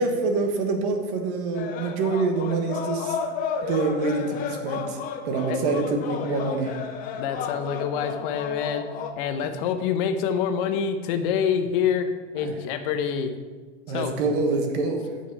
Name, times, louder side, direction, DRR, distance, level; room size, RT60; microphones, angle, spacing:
voice 1, 0.0-3.1 3.6-5.0 5.2-6.8 12.4-12.5 13.9-15.1, right 3 dB, 50° right, 4 dB, 1.4 m, -26 dB
sound 1, 1.5-9.1, left 6 dB, 25° left, 0.5 m, -32 dB
voice 2, 7.2-8.8 9.2-12.1 12.3-13.3 13.9-14.1, left 7 dB, 45° left, 8 dB, 0.9 m, -26 dB
8.4 x 5.9 x 4.8 m, 1.4 s
supercardioid pair, 150°, 36 cm